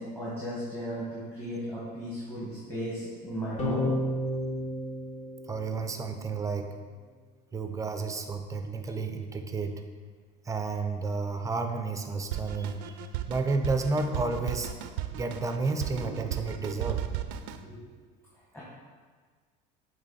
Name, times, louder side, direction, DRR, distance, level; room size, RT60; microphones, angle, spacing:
voice 1, 0.0-3.9 17.7-17.8 18.5-18.6, equal, 10° left, -8 dB, 1.7 m, -35 dB
sound 1, 3.6-6.2, left 1 dB, 35° left, 1.8 m, -32 dB
voice 2, 5.5-6.7 7.5-9.8 10.5-14.7 15.1-17.1, right 3 dB, 15° right, 6 dB, 0.5 m, -31 dB
Drum kit, 12.3-17.6, right 11 dB, 85° right, 0.5 m, -35 dB
8.6 x 3.5 x 4.2 m, 1.5 s
cardioid pair, 130°, 20 cm